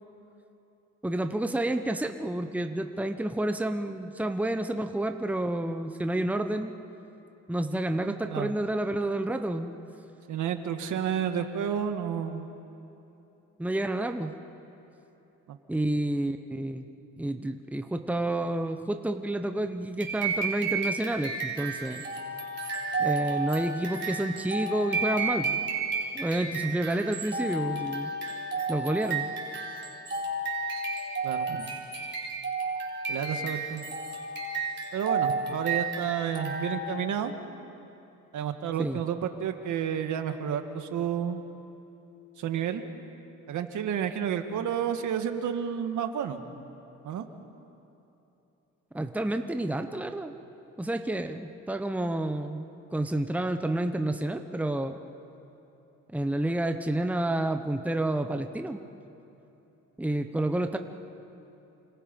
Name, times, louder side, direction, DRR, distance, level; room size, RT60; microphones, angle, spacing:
voice 1, 1.0-6.7 7.5-9.7 13.6-14.3 15.7-16.8 17.2-22.0 23.0-25.6 26.1-28.1 28.7-29.3 38.8-39.0 48.9-50.3 50.8-55.0 56.1-58.8 60.0-60.8, right 1 dB, 5° right, 7 dB, 1.1 m, -29 dB
voice 2, 8.0-8.5 10.3-12.5 15.5-15.6 31.2-31.7 33.1-33.8 34.9-37.3 38.3-41.4 42.4-42.8 43.5-46.4 47.0-47.3, right 8 dB, 75° right, 7 dB, 1.8 m, -31 dB
sound 1, 20.0-37.0, right 3 dB, 40° right, 4.2 m, -32 dB
29.0 x 26.0 x 5.4 m, 3.0 s
cardioid pair, 90°, 30 cm